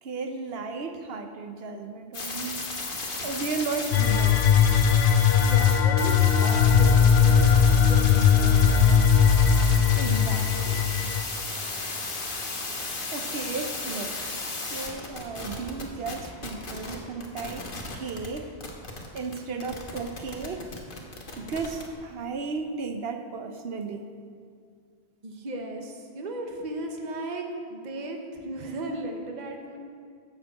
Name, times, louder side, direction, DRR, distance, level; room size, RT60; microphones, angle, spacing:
voice 1, 0.0-2.6 3.2-4.5 9.9-10.8 13.1-14.3 14.6-18.5 19.1-20.7 21.4-24.1, right 4 dB, 70° right, 7 dB, 1.0 m, -34 dB
sound 1, 2.1-16.9 17.2-21.9, left 3 dB, 55° left, 1.4 m, -34 dB
sound 2, 3.9-11.2, left 7 dB, 80° left, 0.9 m, -19 dB
voice 2, 5.4-8.7 25.2-29.8, right 2 dB, 45° right, 2 dB, 1.1 m, -35 dB
11.5 x 4.9 x 7.6 m, 2.2 s
omnidirectional pair, 1.1 m